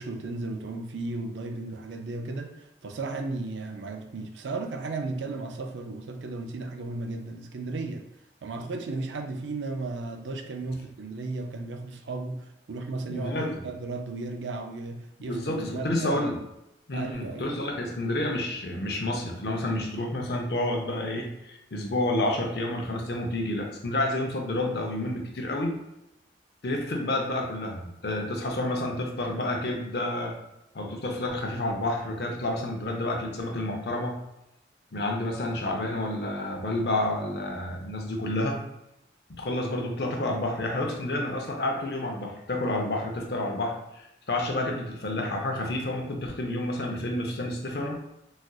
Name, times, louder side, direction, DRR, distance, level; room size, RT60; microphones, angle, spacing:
voice 1, 0.0-8.0 8.4-16.2 16.9-17.6, right 3 dB, 90° right, 5 dB, 0.5 m, -35 dB
voice 2, 13.1-13.5 15.2-16.4 16.9-25.8 26.6-30.3 30.7-34.2 34.9-38.6 39.4-48.0, left 1 dB, 65° left, 2 dB, 0.6 m, -29 dB
4.1 x 2.4 x 2.3 m, 0.85 s
head